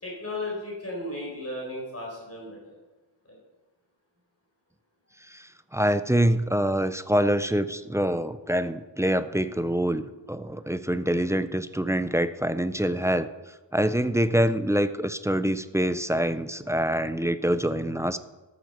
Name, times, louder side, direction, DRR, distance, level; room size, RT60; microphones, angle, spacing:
voice 1, 0.0-2.7 3.3-3.4, left 1 dB, 30° left, -3 dB, 4.3 m, -35 dB
voice 2, 5.3-13.3 13.7-18.2, right 1 dB, 5° right, 12 dB, 0.4 m, -25 dB
13.5 x 8.0 x 6.6 m, 1.1 s
wide cardioid pair, 165°, 46 cm